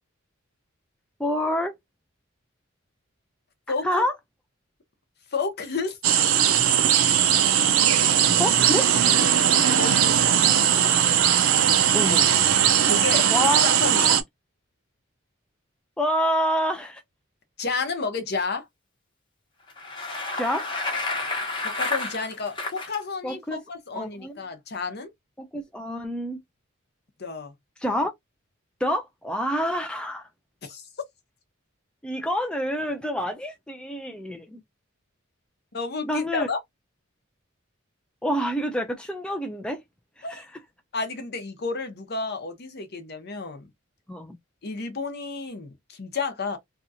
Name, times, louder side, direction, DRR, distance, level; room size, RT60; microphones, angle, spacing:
voice 1, 1.2-1.7 3.8-4.1 8.4-8.9 11.9-12.3 13.3-13.6 13.9-14.2 16.0-17.0 20.3-20.6 23.2-23.6 23.9-24.4 25.4-26.4 27.8-28.1 28.8-30.2 32.0-34.6 36.1-36.5 38.2-39.8 40.2-40.4 44.1-44.4, equal, 5° left, 0.4 m, -27 dB
voice 2, 3.7-4.0 5.3-6.0 7.8-8.2 9.4-10.6 12.9-13.5 13.8-14.2 17.6-18.7 21.6-25.1 27.2-27.5 30.6-30.8 35.7-36.6 40.2-40.4 40.9-43.7 44.6-46.6, left 4 dB, 50° left, 0.8 m, -31 dB
sound 1, 6.0-14.2, right 9 dB, 75° right, 0.5 m, -19 dB
Bicycle, 19.7-23.0, left 3 dB, 25° left, 0.9 m, -30 dB
2.9 x 2.4 x 2.6 m
head